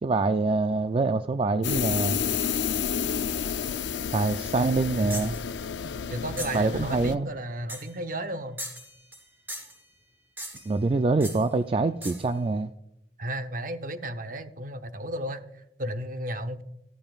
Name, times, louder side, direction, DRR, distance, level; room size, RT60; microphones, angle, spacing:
voice 1, 0.0-2.2 4.1-5.4 6.5-7.3 10.7-12.7, right 3 dB, 30° right, 9 dB, 0.3 m, -25 dB
sound 1, 1.6-7.2, left 7 dB, 80° left, 0.5 m, -30 dB
voice 2, 4.7-5.2 6.1-8.6 13.2-16.6, right 1 dB, 50° right, 9 dB, 0.8 m, -34 dB
sound 2, 5.1-5.4 6.4-6.7 7.7-8.0 8.6-9.2 9.5-9.8 10.4-10.8 11.2-11.4 12.0-12.3, equal, 10° right, 3.0 m, -38 dB
14.0 x 13.5 x 2.4 m, 0.87 s
head